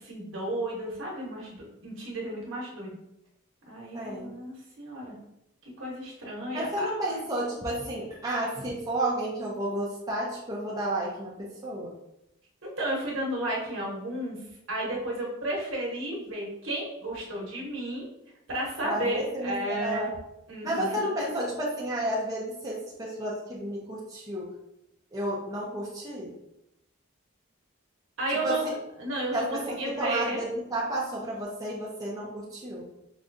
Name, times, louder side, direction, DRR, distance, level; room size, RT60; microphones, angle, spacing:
voice 1, 0.0-3.0 3.7-5.1 5.6-6.9 12.6-14.4 14.7-18.0 18.5-20.1 20.5-21.0 28.2-30.4, right 1 dB, 70° right, -3 dB, 1.1 m, -33 dB
voice 2, 3.9-4.3 6.5-11.9 18.8-20.1 20.6-24.5 25.1-26.3 28.4-28.7 29.3-32.8, right 1 dB, 15° right, -6 dB, 0.6 m, -31 dB
5.0 x 2.3 x 2.6 m, 0.85 s
head